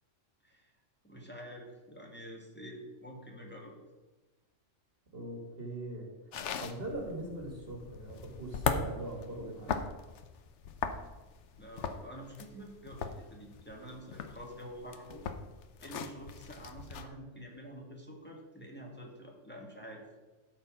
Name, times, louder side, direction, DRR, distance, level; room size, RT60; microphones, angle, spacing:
voice 1, 1.0-3.8 11.6-15.2 15.8-20.0, equal, 10° left, 0 dB, 1.8 m, -48 dB
voice 2, 5.1-6.1 6.3-9.8, right 1 dB, 50° right, 0 dB, 2.0 m, -41 dB
sound 1, 6.3-17.1, left 6 dB, 70° left, 1.0 m, -39 dB
12.5 x 4.6 x 6.2 m, 1.2 s
omnidirectional pair, 1.3 m